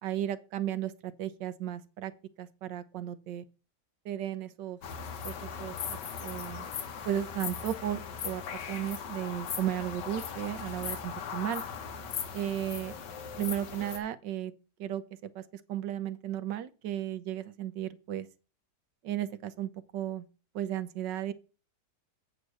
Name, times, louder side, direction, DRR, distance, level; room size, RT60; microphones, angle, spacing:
voice 1, 0.0-2.1 2.4-3.4 4.0-4.8 5.2-6.7 7.1-8.4 8.7-11.6 12.3-12.9 13.4-14.5 14.8-15.4 15.7-18.3 19.0-20.2 20.5-21.3, right 11 dB, 85° right, 1.5 m, -35 dB
sound 1, 4.8-14.0, left 7 dB, 80° left, 1.7 m, -39 dB
8.4 x 5.2 x 6.2 m
omnidirectional pair, 1.9 m